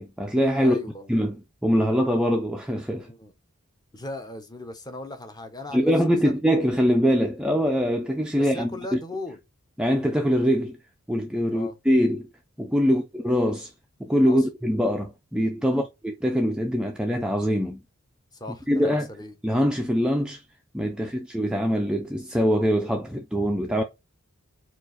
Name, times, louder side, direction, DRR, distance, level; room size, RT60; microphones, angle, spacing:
voice 1, 0.0-0.8 1.1-1.4 1.6-3.1 5.7-9.0 9.8-10.8 11.1-12.3 12.6-13.7 14.0-17.8 18.7-19.1 19.4-20.4 20.7-23.8, equal, 5° right, 0.3 m, -23 dB
voice 2, 0.6-1.1 3.1-3.3 3.9-6.4 8.4-9.4 11.5-11.8 12.8-13.0 14.3-14.5 15.6-15.9 18.3-19.4 20.9-21.1, left 2 dB, 20° left, 0.7 m, -38 dB
4.5 x 2.4 x 3.9 m
head